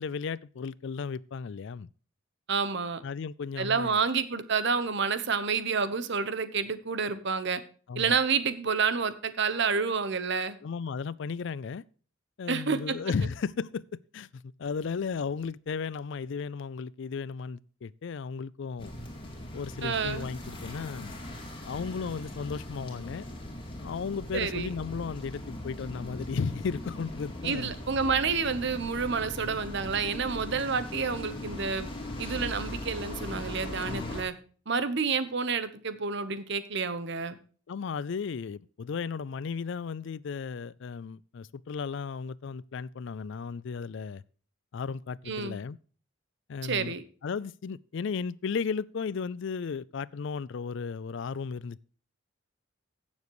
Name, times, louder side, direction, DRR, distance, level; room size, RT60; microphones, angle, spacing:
voice 1, 0.0-1.9 3.0-4.0 7.9-8.2 10.6-11.8 12.4-18.9 19.5-21.1 21.6-23.3 23.8-27.7 33.8-34.2 37.7-44.2 44.7-45.8 46.5-46.9 47.2-51.8, left 5 dB, 65° left, 0.4 m, -35 dB
voice 2, 2.5-3.0 3.6-7.6 8.0-10.6 12.5-12.9 19.8-20.3 24.3-24.7 27.4-31.9 32.2-34.3 34.7-37.4 45.3-45.6 46.6-47.0, right 5 dB, 60° right, 1.0 m, -29 dB
sound 1, 18.8-34.2, left 1 dB, 25° left, 2.5 m, -40 dB
16.0 x 7.2 x 3.1 m
head